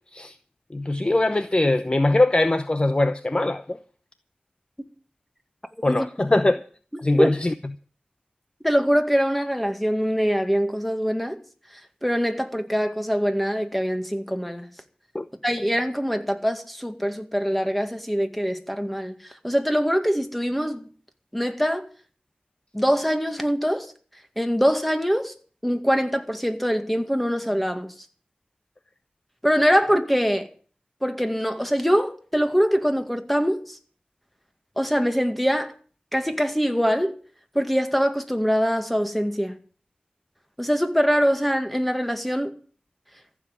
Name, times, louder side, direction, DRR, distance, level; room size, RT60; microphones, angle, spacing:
voice 1, 0.7-3.8 5.8-6.6 7.0-7.5 15.1-15.2, left 2 dB, 30° left, 0.8 m, -21 dB
voice 2, 8.6-11.4 12.0-14.7 15.4-20.9 21.3-21.9 22.7-23.9 24.4-25.3 25.6-27.9 29.4-30.5 31.0-33.8 34.8-35.7 36.1-37.2 37.5-39.6 40.6-42.5, equal, 5° left, 2.0 m, -23 dB
15.0 x 7.5 x 9.6 m
wide cardioid pair, 70°, 3 cm